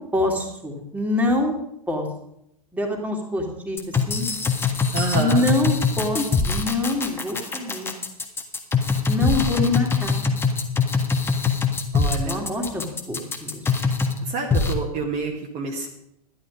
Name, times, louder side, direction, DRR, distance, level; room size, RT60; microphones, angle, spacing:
voice 1, 0.0-1.5 1.9-2.1 2.7-3.8 4.1-4.3 5.1-8.0 9.1-10.2 12.2-13.6, left 1 dB, 5° right, 1 dB, 2.7 m, -25 dB
sound 1, 3.8-14.2 14.5-14.7, left 5 dB, 10° left, 1.5 m, -22 dB
voice 2, 4.9-5.5 11.9-12.5 14.2-15.9, right 4 dB, 40° right, 1 dB, 1.9 m, -28 dB
12.0 x 11.0 x 5.1 m, 0.78 s
figure-of-eight pair, 100°, 20 cm